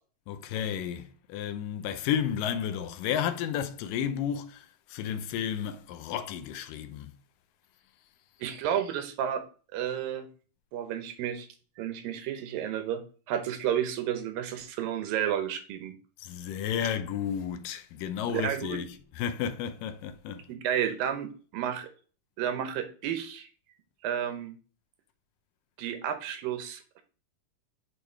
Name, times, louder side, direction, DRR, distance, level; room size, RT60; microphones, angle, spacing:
voice 1, 0.3-7.1 16.2-20.5, left 9 dB, 80° left, 2.3 m, -32 dB
voice 2, 8.4-9.4 9.7-10.3 10.7-11.5 11.8-13.0 13.3-15.9 18.3-18.8 20.5-21.9 22.4-23.5 24.0-24.5 25.8-27.0, right 9 dB, 85° right, 2.7 m, -31 dB
8.4 x 4.6 x 3.3 m
omnidirectional pair, 4.0 m